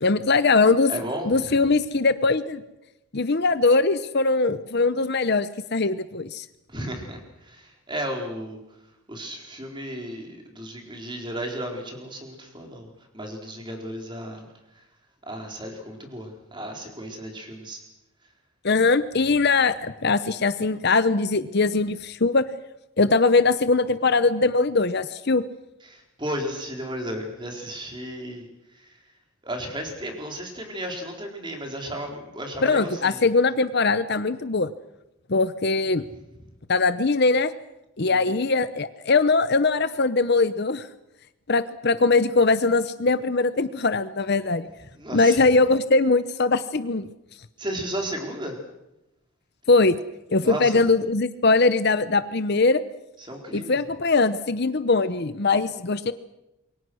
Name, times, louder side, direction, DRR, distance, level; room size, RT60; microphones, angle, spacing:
voice 1, 0.0-0.9 1.3-2.6 3.1-6.5 18.6-22.4 23.0-25.4 32.6-34.7 35.3-36.0 36.7-37.5 38.0-40.9 41.5-44.7 45.1-47.1 49.7-50.0 50.3-52.8 53.5-56.1, left 3 dB, 50° left, 13 dB, 0.8 m, -21 dB
voice 2, 0.9-1.5 6.7-8.6 9.1-12.9 13.1-14.5 15.2-17.8 25.8-28.5 28.7-29.0 29.4-33.2 38.0-38.4 44.9-45.5 47.6-48.6 50.4-50.8 53.3-53.8, equal, 20° right, 2 dB, 4.3 m, -34 dB
27.5 x 23.0 x 6.3 m, 0.91 s
head